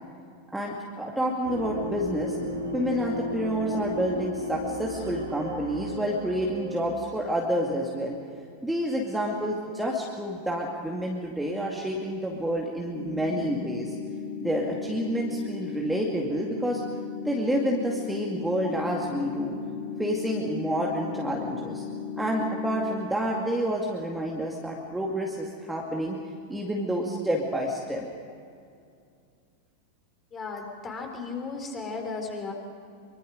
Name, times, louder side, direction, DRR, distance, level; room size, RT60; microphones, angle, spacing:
voice 1, 0.5-2.4 2.7-8.2 8.6-13.9 14.4-16.8 17.2-19.6 20.0-21.8 22.1-26.2 26.5-28.1, equal, 5° right, -2 dB, 2.4 m, -29 dB
sound 1, 1.4-7.2, left 1 dB, 70° right, 3.5 m, -34 dB
sound 2, 12.9-22.9, left 6 dB, 55° left, 3.3 m, -36 dB
voice 2, 30.3-32.5, left 4 dB, 25° left, 2 dB, 4.3 m, -35 dB
24.5 x 24.0 x 5.2 m, 2.4 s
figure-of-eight pair, 90°, 0 cm